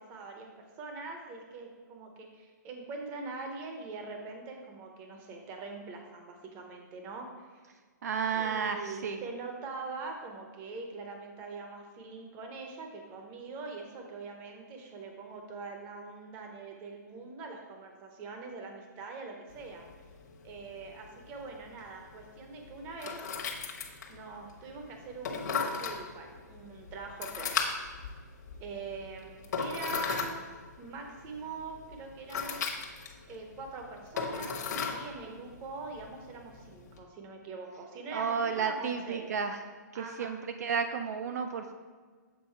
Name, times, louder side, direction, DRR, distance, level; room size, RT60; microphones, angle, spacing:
voice 1, 0.0-7.6 8.4-19.9 20.4-23.3 24.1-27.5 28.6-30.4 30.8-32.6 33.3-34.6 34.8-39.3 39.9-40.4, right 3 dB, 20° right, 3 dB, 0.7 m, -43 dB
voice 2, 8.0-9.2 38.1-39.6 39.9-41.7, right 6 dB, 60° right, 7 dB, 0.4 m, -32 dB
sound 1, 19.5-37.0, left 5 dB, 60° left, 1.0 m, -38 dB
7.4 x 3.9 x 4.4 m, 1.5 s
hypercardioid pair, 170°, 10 cm